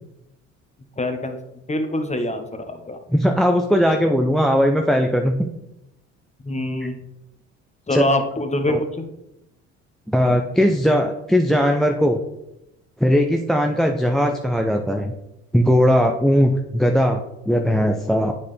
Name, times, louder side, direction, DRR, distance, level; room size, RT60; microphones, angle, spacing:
voice 1, 1.0-1.4 1.7-3.0 6.4-7.0 7.9-8.9, left 1 dB, 20° left, 6 dB, 1.1 m, -24 dB
voice 2, 3.1-5.3 7.9-8.1 8.7-8.8 10.1-12.2 13.0-15.1 15.5-18.3, equal, ahead, 3 dB, 0.6 m, -19 dB
8.4 x 4.2 x 3.3 m, 0.88 s
hypercardioid pair, 50°, 36 cm